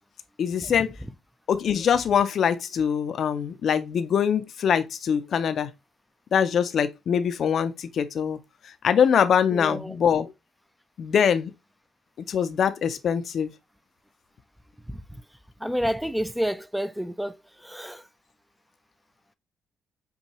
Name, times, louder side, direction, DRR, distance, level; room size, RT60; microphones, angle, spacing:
voice 1, 0.4-1.0 1.5-5.7 6.3-8.4 8.8-10.3 11.0-11.5 12.3-13.5, left 7 dB, 60° left, 0.5 m, -23 dB
voice 2, 9.5-10.0 14.9-15.0 15.6-17.4 17.6-18.0, equal, ahead, 0.4 m, -29 dB
5.4 x 2.3 x 3.0 m
cardioid pair, 90°, 0 cm